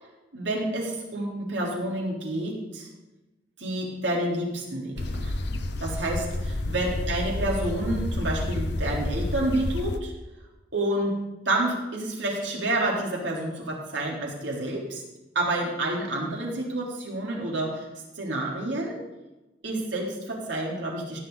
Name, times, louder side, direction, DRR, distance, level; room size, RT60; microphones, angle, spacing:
voice 1, 0.3-2.9 3.6-10.1 10.7-11.1 11.5-15.0 15.4-17.9 18.2-19.0 19.6-21.2, right 1 dB, 85° right, -2 dB, 3.5 m, -29 dB
sound 1, 5.0-10.0, left 1 dB, 65° left, 0.8 m, -30 dB
16.0 x 9.4 x 4.0 m, 1.1 s
head